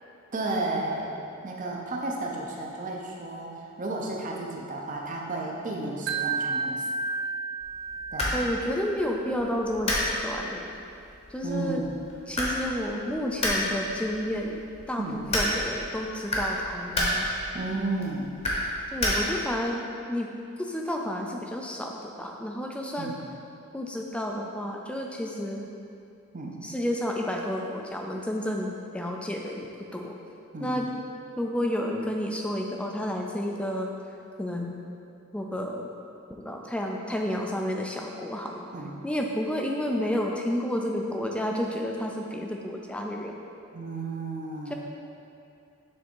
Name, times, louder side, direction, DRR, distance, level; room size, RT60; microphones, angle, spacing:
voice 1, 0.3-1.1 1.4-6.9 8.1-8.4 11.4-11.9 15.0-15.2 17.5-18.4 23.0-23.2 26.3-26.7 30.5-30.8 38.7-39.0 43.7-44.7, right 2 dB, 35° right, -1 dB, 0.6 m, -33 dB
Wind chime, 6.1-9.2, right 4 dB, 75° right, 0.4 m, -32 dB
sound 1, 7.6-19.6, left 1 dB, 30° left, 0.9 m, -31 dB
voice 2, 8.3-10.7 11.3-11.8 12.3-14.6 14.9-17.2 18.9-19.8 20.1-20.3 20.6-23.1 23.7-25.7 26.6-30.1 30.6-30.9 31.4-33.9 34.4-34.7 35.3-35.9 36.3-38.7 39.0-43.3 44.7-44.8, left 1 dB, 5° left, 1 dB, 0.3 m, -31 dB
6.4 x 3.5 x 4.5 m, 2.6 s
head